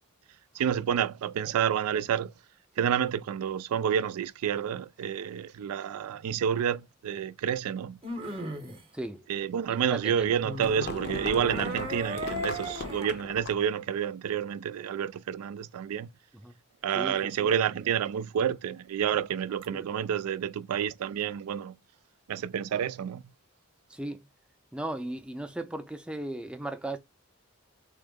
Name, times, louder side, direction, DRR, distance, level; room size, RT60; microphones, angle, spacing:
voice 1, 0.5-2.3 2.8-8.0 9.3-16.1 16.8-21.8 22.3-23.2, right 8 dB, 90° right, 0.3 m, -29 dB
sound 1, 6.5-6.6 8.0-8.8 10.4-13.2 19.6-19.7, right 1 dB, 25° right, 0.7 m, -37 dB
voice 2, 9.7-10.3 16.4-16.5 16.9-17.5 19.7-19.9 23.9-24.3 24.7-27.0, right 1 dB, 5° right, 0.4 m, -37 dB
sound 2, 10.4-13.7, left 3 dB, 45° left, 0.5 m, -37 dB
3.6 x 2.0 x 3.5 m
head